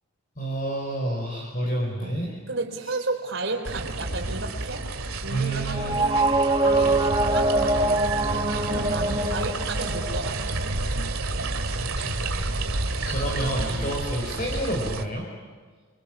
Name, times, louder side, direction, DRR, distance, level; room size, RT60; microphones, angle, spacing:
voice 1, 0.4-2.4 5.3-5.9 11.8-15.2, right 1 dB, 40° left, 0 dB, 4.7 m, -29 dB
voice 2, 2.5-4.9 5.2-10.8 13.0-13.1, right 3 dB, 60° right, 4 dB, 4.1 m, -34 dB
sound 1, 3.6-15.0, right 2 dB, 85° right, 2.2 m, -30 dB
sound 2, 5.7-10.7, right 2 dB, 20° right, 1.1 m, -24 dB
27.5 x 25.5 x 6.1 m, 1.5 s
head